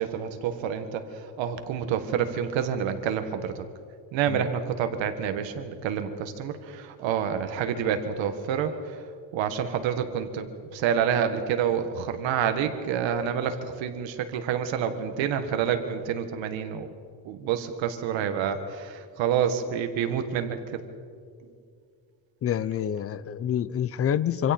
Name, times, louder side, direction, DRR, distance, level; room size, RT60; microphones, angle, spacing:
voice 1, 0.0-3.6 4.1-9.0 9.3-16.9 17.3-20.8, right 8 dB, 80° right, 8 dB, 1.7 m, -28 dB
voice 2, 22.4-24.5, left 9 dB, 35° left, 16 dB, 0.5 m, -27 dB
26.5 x 25.5 x 4.4 m, 2.2 s
cardioid pair, 175°, 45 cm